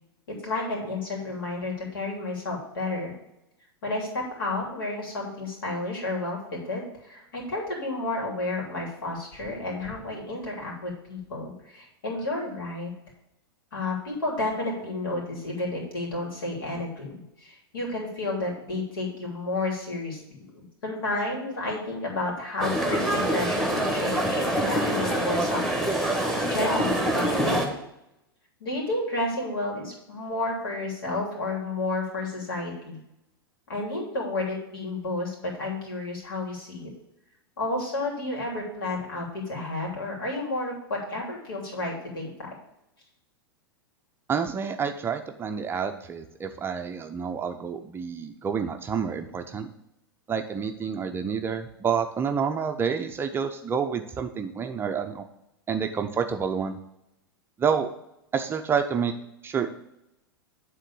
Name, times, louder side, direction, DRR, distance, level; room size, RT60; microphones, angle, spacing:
voice 1, 0.3-3.1 3.8-6.4 6.6-12.9 13.7-25.9 26.5-27.7 28.6-33.0 33.7-36.9 37.6-42.5, left 2 dB, 70° left, -2 dB, 3.1 m, -31 dB
sound 1, 22.6-27.7, right 1 dB, ahead, 1.5 m, -25 dB
voice 2, 44.3-49.7 50.3-55.2 55.7-56.8 57.6-57.9 58.3-59.1 59.4-59.7, right 6 dB, 20° right, 6 dB, 0.6 m, -28 dB
9.1 x 3.8 x 7.1 m, 0.84 s
figure-of-eight pair, 95°, 12 cm